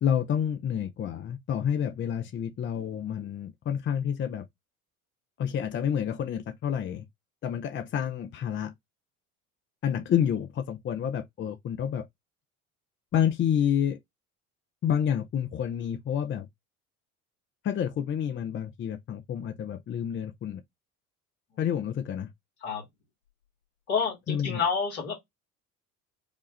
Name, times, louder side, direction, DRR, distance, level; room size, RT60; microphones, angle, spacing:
voice 1, 0.0-4.5 5.4-7.1 7.4-8.7 9.8-12.1 13.1-14.0 14.8-16.5 17.6-20.6 21.6-22.3 24.3-24.6, left 9 dB, 25° left, 0.6 m, -29 dB
voice 2, 23.9-25.1, left 6 dB, 75° left, 2.2 m, -28 dB
5.2 x 2.4 x 3.1 m
figure-of-eight pair, 60°, 44 cm